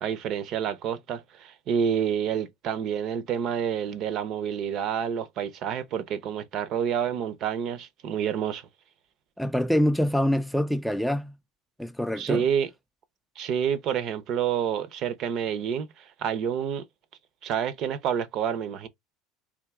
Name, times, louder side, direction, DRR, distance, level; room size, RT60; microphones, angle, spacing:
voice 1, 0.0-8.6 12.2-12.7 13.4-16.8 17.4-18.9, right 8 dB, 55° right, 0.6 m, -28 dB
voice 2, 9.4-11.3 11.8-12.4, left 1 dB, ahead, 0.3 m, -25 dB
3.5 x 2.6 x 3.4 m
supercardioid pair, 110°, 0 cm